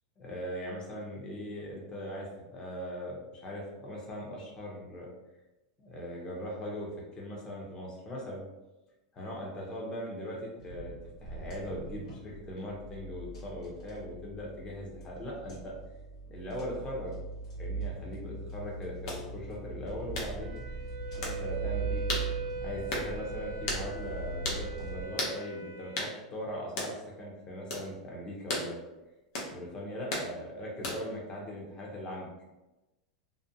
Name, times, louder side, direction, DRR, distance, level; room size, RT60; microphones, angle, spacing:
voice 1, 0.2-5.1 5.8-8.5 9.1-10.9 11.2-15.7 16.3-17.1 17.6-20.6 21.2-22.0 22.6-28.8 29.5-32.3, equal, 25° left, -3 dB, 0.7 m, -40 dB
sound 1, 10.6-25.1, right 3 dB, 85° left, 1.0 m, -40 dB
sound 2, 19.1-19.2 20.1-20.3 21.2-21.4 22.1-22.3 22.9-23.1 23.7-23.9 24.4-24.6 25.2-25.4 26.0-26.1 26.8-26.9 27.7-27.9 28.5-28.7 29.3-29.5 30.1-30.3 30.8-31.1, left 1 dB, 65° left, 0.7 m, -34 dB
Wind instrument woodwind instrument, 20.4-26.1, right 3 dB, 50° right, 0.3 m, -41 dB
2.5 x 2.1 x 2.7 m, 1.0 s
supercardioid pair, 135°, 3 cm